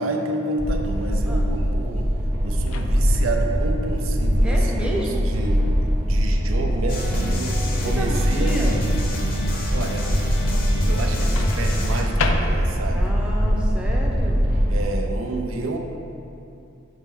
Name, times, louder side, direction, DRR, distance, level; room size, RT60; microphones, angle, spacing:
voice 1, 0.0-2.1 2.4-5.7 6.0-8.9 9.7-10.1 10.8-13.2 14.7-15.8, right 2 dB, 75° right, 2 dB, 0.6 m, -29 dB
sound 1, 0.6-14.8, equal, 50° right, 1.0 m, -22 dB
Microwave oven, 2.6-3.3 5.3-5.5 11.4-13.0, left 4 dB, 75° left, 0.4 m, -31 dB
voice 2, 4.4-5.3 7.8-8.7 12.9-14.5, equal, 5° right, -3 dB, 0.6 m, -31 dB
sound 2, 6.9-12.0, equal, 40° left, 0.7 m, -28 dB
7.1 x 4.2 x 3.7 m, 2.7 s
head